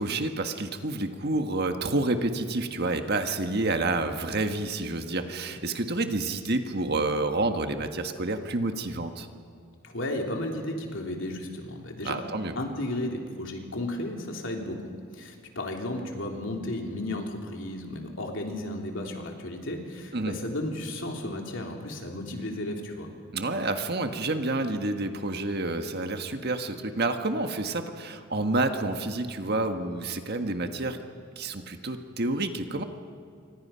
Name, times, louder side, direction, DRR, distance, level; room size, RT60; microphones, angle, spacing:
voice 1, 0.0-9.3 12.0-12.5 20.1-20.4 23.3-31.0 31.4-32.8, right 2 dB, 50° right, 6 dB, 1.5 m, -29 dB
voice 2, 9.8-12.2 12.5-23.1, left 1 dB, 60° left, 2 dB, 3.2 m, -34 dB
27.0 x 25.0 x 5.7 m, 2.3 s
head